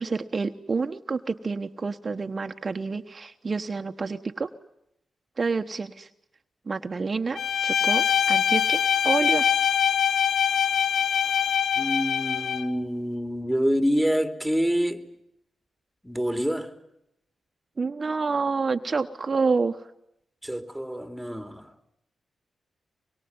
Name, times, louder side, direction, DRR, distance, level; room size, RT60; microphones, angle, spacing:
voice 1, 0.0-4.5 5.4-6.1 6.7-9.5 17.8-19.8, right 4 dB, 45° right, 1.1 m, -28 dB
Bowed string instrument, 7.4-12.7, left 8 dB, 75° left, 0.9 m, -23 dB
voice 2, 11.8-15.1 16.0-16.7 20.4-21.7, equal, ahead, 3.1 m, -27 dB
25.0 x 22.5 x 9.6 m
supercardioid pair, 40°, 0 cm